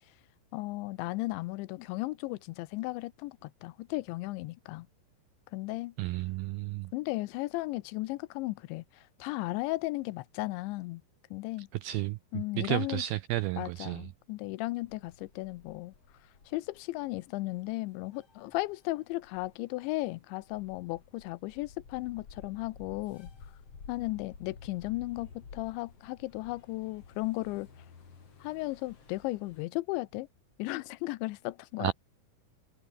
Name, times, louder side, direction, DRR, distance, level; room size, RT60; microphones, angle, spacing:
voice 1, 0.5-4.9 5.5-5.9 6.9-11.0 11.3-11.7 12.3-13.0 13.6-15.9 16.5-23.3 23.9-27.7 28.4-30.3 30.6-31.9, left 20 dB, 90° left, 3.1 m, -35 dB
voice 2, 6.0-6.9 11.8-12.2 12.6-14.0 31.8-31.9, right 16 dB, 85° right, 2.1 m, -32 dB
sound 1, 14.8-29.6, left 5 dB, 35° left, 3.9 m, -53 dB
omnidirectional pair, 5.1 m